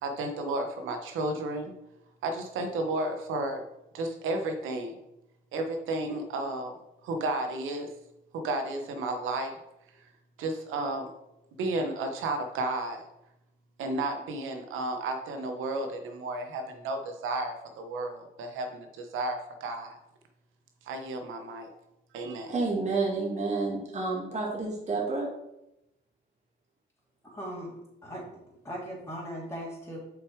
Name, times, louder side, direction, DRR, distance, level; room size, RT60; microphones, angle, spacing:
voice 1, 0.0-1.7 2.2-3.6 3.9-4.9 5.5-6.7 7.0-7.9 8.3-9.5 10.4-11.1 11.6-13.0 13.8-20.0 20.9-21.7 22.1-22.6, right 2 dB, 85° right, 5 dB, 1.2 m, -32 dB
voice 2, 22.5-25.3, right 3 dB, 35° right, -3 dB, 2.5 m, -29 dB
voice 3, 27.2-27.7 28.0-28.3 28.6-30.0, equal, 15° left, -5 dB, 2.6 m, -38 dB
6.8 x 5.3 x 4.8 m, 0.87 s
cardioid pair, 90°, 20 cm